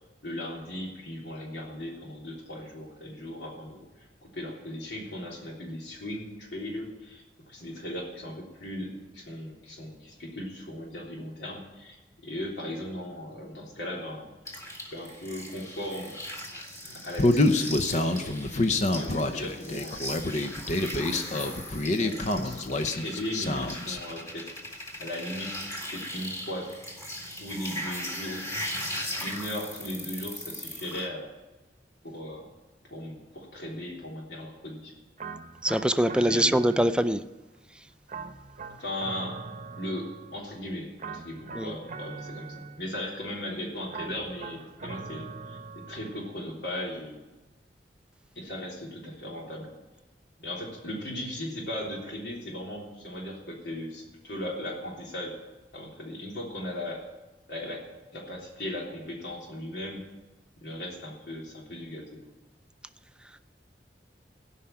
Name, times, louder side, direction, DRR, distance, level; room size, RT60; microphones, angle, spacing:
voice 1, 0.2-12.0 12.2-14.3 14.9-16.1 16.8-18.4 18.8-20.0 20.8-22.6 22.9-24.5 25.0-25.6 25.9-26.7 27.4-28.5 29.2-31.3 32.0-32.5 32.9-34.9 36.1-36.6 38.8-39.4 39.8-47.2 48.3-49.7 50.4-55.4 55.7-57.0 57.5-57.8 58.1-60.0 60.6-62.2, left 1 dB, 75° left, -2 dB, 3.4 m, -37 dB
sound 1, 14.4-31.1, left 1 dB, 15° left, 1.8 m, -39 dB
Human voice, 17.2-24.0, left 2 dB, 45° left, 0.8 m, -26 dB
sound 2, 35.2-37.3 38.1-40.5 41.0-43.1 43.9-46.3, right 4 dB, 45° right, 0.9 m, -42 dB
voice 2, 35.6-37.2 41.6-41.7, right 1 dB, 5° right, 11 dB, 0.4 m, -23 dB
16.5 x 5.8 x 9.0 m, 1.1 s
head